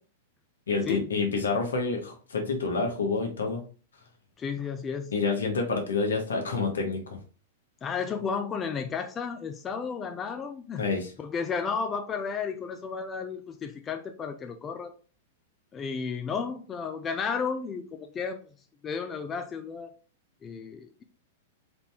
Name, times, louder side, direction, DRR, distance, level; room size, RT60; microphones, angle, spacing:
voice 1, 0.7-3.6 5.1-7.2 10.8-11.1, left 4 dB, 85° left, 3 dB, 1.2 m, -28 dB
voice 2, 4.4-5.1 7.8-10.8 11.2-14.9 15.7-18.4 18.8-19.9 20.4-21.0, left 5 dB, 25° left, 6 dB, 0.5 m, -33 dB
4.2 x 2.7 x 3.5 m, 0.38 s
hypercardioid pair, 110°, 0 cm